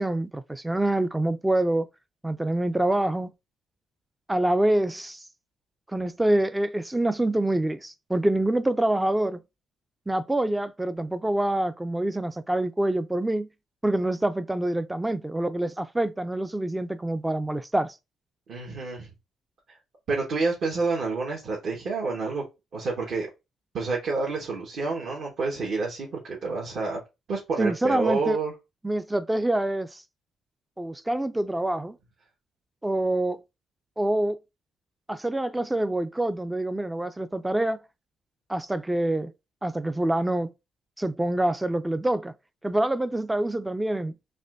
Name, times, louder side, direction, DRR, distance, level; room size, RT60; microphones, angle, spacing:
voice 1, 0.0-1.9 2.2-3.3 4.3-5.2 5.9-9.4 10.1-13.5 13.8-18.0 27.6-28.4 28.8-30.0 30.8-32.0 32.8-33.4 34.0-34.4 35.1-37.8 38.5-39.3 39.6-40.5 41.0-42.3 42.6-44.1, right 1 dB, 10° right, 0.3 m, -26 dB
voice 2, 18.5-19.1 20.1-22.4 22.7-23.3 23.7-27.0 27.3-28.5, right 4 dB, 65° right, 1.4 m, -28 dB
4.1 x 3.2 x 2.5 m
cardioid pair, 90°, 0 cm